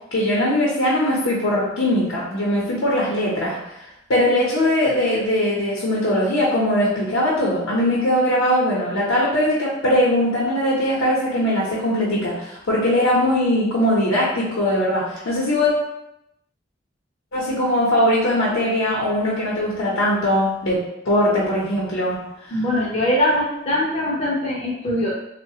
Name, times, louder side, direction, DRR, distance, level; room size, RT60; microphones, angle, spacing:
voice 1, 0.1-3.6 4.1-15.7 17.3-20.8 21.0-22.2 22.5-22.6, left 1 dB, 85° left, -6 dB, 0.7 m, -20 dB
voice 2, 22.5-25.1, left 1 dB, 30° left, -5 dB, 0.4 m, -22 dB
3.1 x 2.1 x 2.7 m, 0.85 s
head